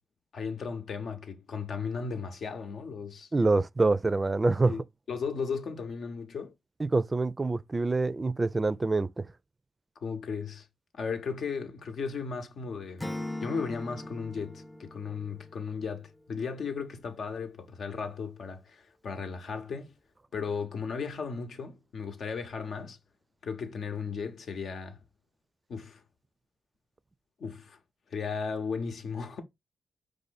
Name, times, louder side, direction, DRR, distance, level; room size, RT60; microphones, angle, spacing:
voice 1, 0.3-3.3 4.7-6.5 10.0-10.7 10.9-13.1 13.4-19.9 20.3-23.0 23.4-25.0 25.7-26.0 27.4-27.8 28.1-29.4, left 5 dB, 70° left, 0.9 m, -35 dB
voice 2, 3.3-4.7 6.8-9.3, right 3 dB, 35° right, 0.4 m, -26 dB
Acoustic guitar / Strum, 13.0-16.1, left 1 dB, 15° left, 0.6 m, -40 dB
4.9 x 2.6 x 4.0 m
supercardioid pair, 40°, 0 cm